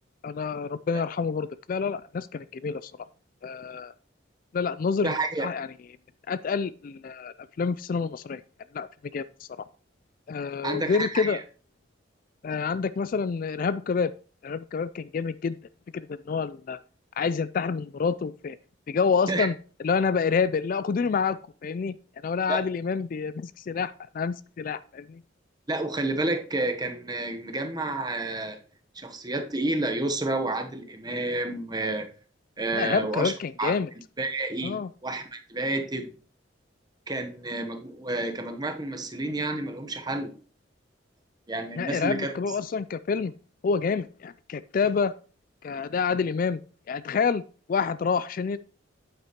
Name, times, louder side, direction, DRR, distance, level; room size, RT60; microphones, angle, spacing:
voice 1, 0.2-2.9 3.4-3.9 4.5-5.1 5.4-5.7 6.3-8.4 8.7-8.9 9.1-9.2 10.3-11.4 12.4-14.1 14.4-15.6 15.9-16.8 17.2-18.6 18.9-19.5 19.8-22.0 22.2-25.2 32.7-33.9 34.6-34.9 41.8-43.3 43.6-45.1 45.6-46.6 46.9-47.4 47.7-48.6, left 5 dB, 45° left, 15 dB, 0.3 m, -28 dB
voice 2, 5.0-5.5 10.6-11.4 19.3-19.5 22.5-22.6 25.7-28.6 28.9-32.1 32.6-33.3 33.6-33.7 34.2-36.1 37.1-40.3 41.5-42.3, right 2 dB, 20° right, 6 dB, 1.0 m, -30 dB
9.1 x 8.4 x 3.0 m, 0.37 s
head